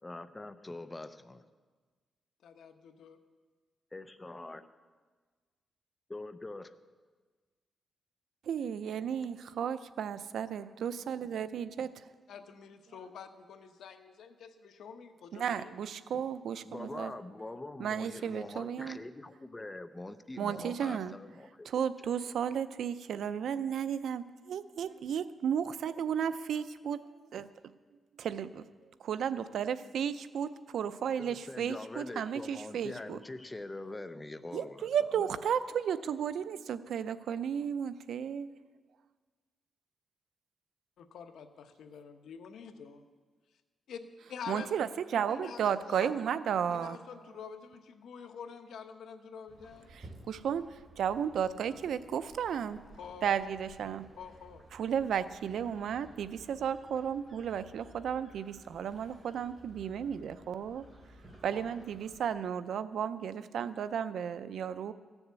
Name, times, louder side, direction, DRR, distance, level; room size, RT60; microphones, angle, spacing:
voice 1, 0.0-1.4 3.9-4.6 6.1-6.7 16.7-21.7 31.2-34.9 35.2-35.3, left 2 dB, 15° left, 11 dB, 0.7 m, -43 dB
voice 2, 2.4-3.2 12.3-15.8 41.0-43.0 43.9-44.0 44.3-44.7 45.3-46.1 46.7-50.0 53.0-53.3 54.2-54.6 61.5-61.7, left 7 dB, 80° left, 7 dB, 1.0 m, -47 dB
voice 3, 8.5-12.1 15.3-17.1 17.8-19.0 20.4-21.1 21.7-27.0 27.3-27.5 28.2-28.6 29.0-33.2 34.5-38.5 44.5-47.0 49.9-52.8 53.2-54.0 54.7-60.9 61.4-64.9, right 8 dB, 75° right, 13 dB, 0.5 m, -34 dB
sound 1, 49.5-62.2, right 1 dB, 30° right, 3.3 m, -56 dB
15.0 x 7.1 x 8.1 m, 1.4 s
cardioid pair, 120°, 0 cm